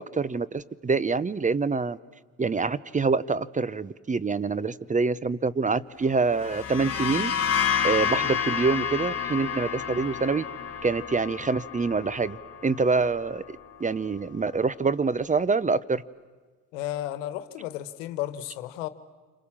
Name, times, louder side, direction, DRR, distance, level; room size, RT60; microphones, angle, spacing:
voice 1, 0.0-2.0 2.4-7.3 7.8-10.4 10.8-13.4 13.8-16.0, right 4 dB, 20° right, 0.8 m, -26 dB
sound 1, 6.3-13.9, left 8 dB, 45° left, 3.1 m, -30 dB
voice 2, 16.7-18.9, left 13 dB, 85° left, 1.3 m, -33 dB
29.0 x 26.5 x 7.4 m
hypercardioid pair, 70°, 37 cm